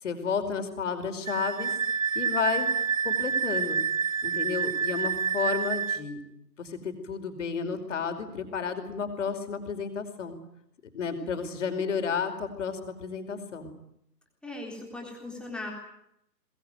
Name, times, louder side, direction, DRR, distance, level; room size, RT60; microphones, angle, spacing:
voice 1, 0.0-1.7 2.1-2.7 3.0-3.8 4.2-6.2 6.6-10.4 10.9-13.7, left 6 dB, 45° left, 7 dB, 5.2 m, -32 dB
Wind instrument woodwind instrument, 1.3-6.0, right 6 dB, 50° right, 1.8 m, -28 dB
voice 2, 14.4-15.7, left 2 dB, ahead, -1 dB, 3.9 m, -38 dB
23.0 x 21.5 x 9.4 m, 0.79 s
figure-of-eight pair, 140°, 50 cm